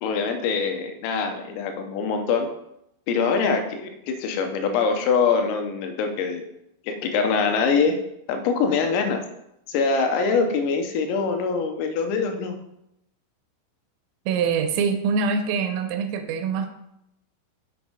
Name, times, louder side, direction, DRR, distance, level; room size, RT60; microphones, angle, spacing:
voice 1, 0.0-2.5 3.1-6.4 6.9-8.0 8.3-9.2 9.7-12.6, left 5 dB, 90° left, 5 dB, 3.5 m, -23 dB
voice 2, 14.3-16.7, right 5 dB, 80° right, 8 dB, 3.2 m, -24 dB
7.6 x 7.0 x 3.9 m, 0.81 s
omnidirectional pair, 6.0 m